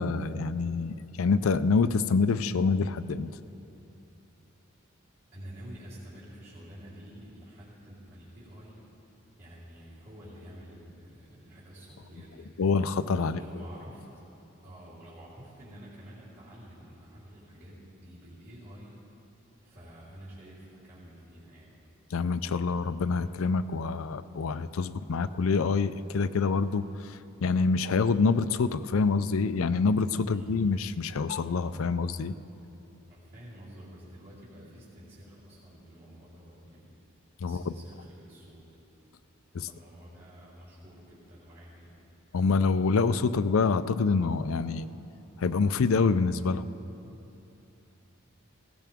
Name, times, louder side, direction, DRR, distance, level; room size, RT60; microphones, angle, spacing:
voice 1, 0.0-3.3 12.6-13.4 22.1-32.3 37.4-37.7 39.5-39.7 42.3-44.9 45.4-46.6, left 4 dB, 75° left, 13 dB, 0.5 m, -26 dB
voice 2, 5.3-8.8 9.4-12.7 13.2-14.0 14.6-19.0 19.6-21.8 23.0-23.3 30.3-30.6 33.1-36.9 37.4-38.6 39.6-42.0, equal, 45° right, -10 dB, 3.6 m, -49 dB
18.0 x 16.5 x 3.6 m, 3.0 s
head